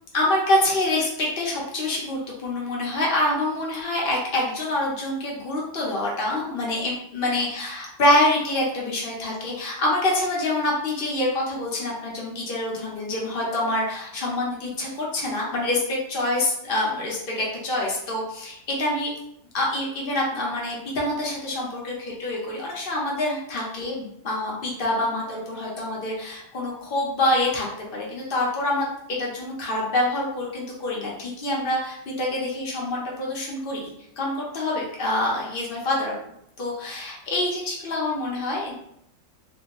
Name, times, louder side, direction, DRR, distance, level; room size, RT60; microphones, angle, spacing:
voice 1, 0.1-19.1 19.5-27.7 27.9-28.9 29.2-36.2 36.6-38.7, left 1 dB, 45° left, -3 dB, 0.7 m, -26 dB
3.5 x 2.7 x 3.0 m, 0.74 s
omnidirectional pair, 2.1 m